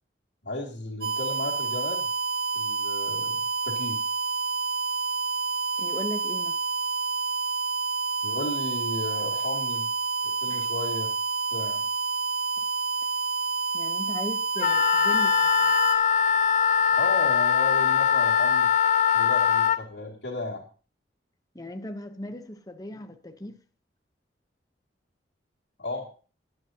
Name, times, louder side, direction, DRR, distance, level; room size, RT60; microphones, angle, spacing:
voice 1, 0.4-2.1 2.5-4.0 8.2-9.9 10.2-11.1 11.5-11.8 16.9-18.7 19.1-20.6 25.8-26.1, left 2 dB, 80° left, 2.6 m, -34 dB
sound 1, 1.0-15.9, right 5 dB, 55° right, 1.7 m, -29 dB
voice 2, 5.8-6.6 10.5-10.6 13.7-15.7 21.5-23.6, left 1 dB, 20° left, 0.9 m, -38 dB
Wind instrument woodwind instrument, 14.6-19.8, left 7 dB, 40° left, 0.5 m, -22 dB
20.5 x 9.0 x 2.9 m
head